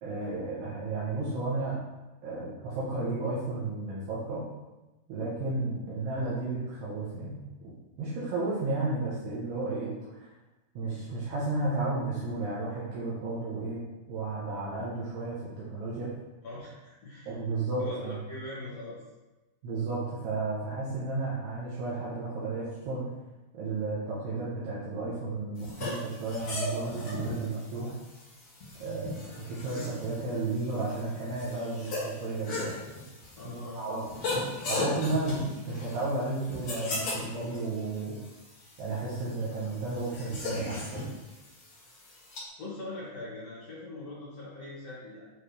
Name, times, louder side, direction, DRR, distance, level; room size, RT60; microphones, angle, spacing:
voice 1, 0.0-1.8 2.2-4.5 5.1-7.5 8.0-9.9 10.7-13.8 14.1-16.1 17.3-18.2 19.6-23.1 23.5-27.9 28.8-29.2 29.5-32.8 33.4-34.0 34.7-38.2 38.8-41.1, right 3 dB, 75° right, -8 dB, 3.1 m, -33 dB
voice 2, 16.4-17.3 17.8-19.0 33.3-33.9 42.6-45.3, left 2 dB, 65° left, -8 dB, 1.6 m, -41 dB
sound 1, 25.6-42.4, left 2 dB, 45° left, 3.0 m, -38 dB
9.8 x 3.6 x 3.2 m, 1.1 s
omnidirectional pair, 5.0 m